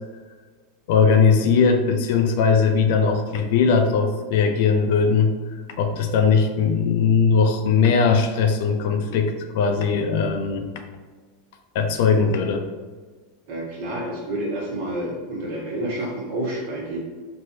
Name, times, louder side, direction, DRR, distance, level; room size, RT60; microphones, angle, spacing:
voice 1, 0.9-5.3 5.8-10.7 11.7-12.6, left 5 dB, 65° left, 5 dB, 0.4 m, -19 dB
voice 2, 13.5-17.0, right 1 dB, 65° right, -4 dB, 1.3 m, -29 dB
3.3 x 2.6 x 2.7 m, 1.4 s
hypercardioid pair, 110°, 0 cm